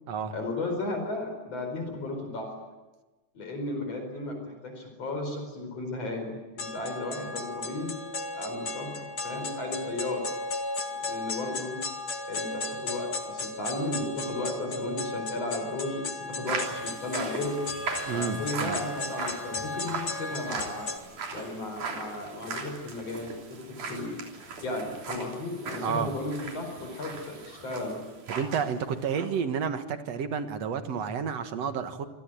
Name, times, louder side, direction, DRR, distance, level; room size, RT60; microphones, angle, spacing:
voice 1, 0.3-2.5 3.3-8.0 8.3-10.3 10.9-11.8 12.3-17.6 18.1-20.9 21.3-24.2 24.6-28.0, left 2 dB, 55° left, 4 dB, 5.8 m, -34 dB
sound 1, 6.6-21.0, left 2 dB, 35° left, 2.1 m, -35 dB
sound 2, 16.5-28.7 28.9-29.3, right 4 dB, 85° right, 4.9 m, -39 dB
voice 2, 18.1-18.8 25.8-26.1 28.3-32.1, right 6 dB, 60° right, 8 dB, 2.5 m, -30 dB
27.0 x 19.0 x 9.2 m, 1.2 s
omnidirectional pair, 3.5 m